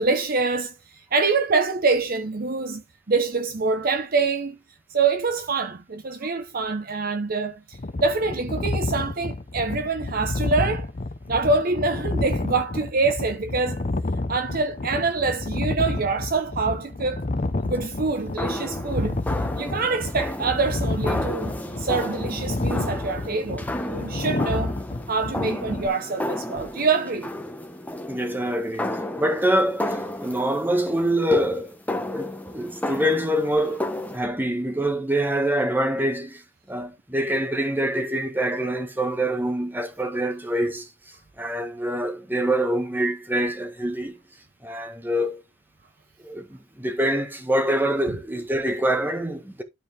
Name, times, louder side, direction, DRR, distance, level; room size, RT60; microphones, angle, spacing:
voice 1, 0.0-4.6 4.9-10.9 11.3-13.8 14.3-17.3 17.6-19.2 19.6-24.8 25.1-27.3, right 4 dB, 45° right, 0.8 m, -25 dB
sound 1, 7.7-25.9, left 2 dB, 35° left, 0.7 m, -30 dB
sound 2, 18.0-34.2, left 1 dB, 10° left, 1.0 m, -33 dB
voice 2, 28.1-31.8 32.1-36.4 36.7-40.9 41.4-44.2 44.6-45.4 46.2-49.6, right 1 dB, 10° right, 1.5 m, -25 dB
12.0 x 4.3 x 3.6 m
head